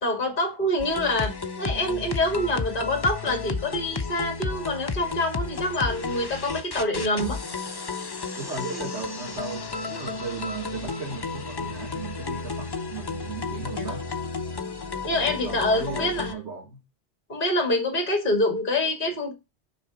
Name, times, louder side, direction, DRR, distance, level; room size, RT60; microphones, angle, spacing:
voice 1, 0.0-7.4 13.8-13.9 15.0-16.3 17.3-19.3, left 1 dB, 50° left, 2.3 m, -26 dB
sound 1, 0.8-16.3, left 4 dB, 30° left, 0.5 m, -32 dB
voice 2, 8.4-14.1 15.1-16.8, right 4 dB, 80° right, 1.9 m, -36 dB
6.3 x 3.7 x 4.9 m
omnidirectional pair, 1.1 m